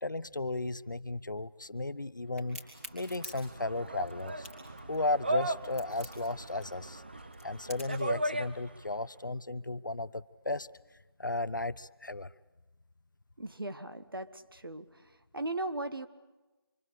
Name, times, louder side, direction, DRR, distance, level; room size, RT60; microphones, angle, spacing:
voice 1, 0.0-2.6 2.9-4.5 4.9-7.0 7.4-10.7 11.2-12.3, left 2 dB, 50° left, 16 dB, 0.9 m, -35 dB
Crack, 2.4-8.1, left 2 dB, ahead, 3.3 m, -48 dB
sound 1, 2.6-9.0, right 1 dB, 25° right, 0.9 m, -37 dB
voice 2, 13.4-14.9 15.3-16.1, right 2 dB, 65° right, 9 dB, 2.0 m, -37 dB
26.5 x 24.5 x 8.4 m, 1.1 s
figure-of-eight pair, 170°, 13 cm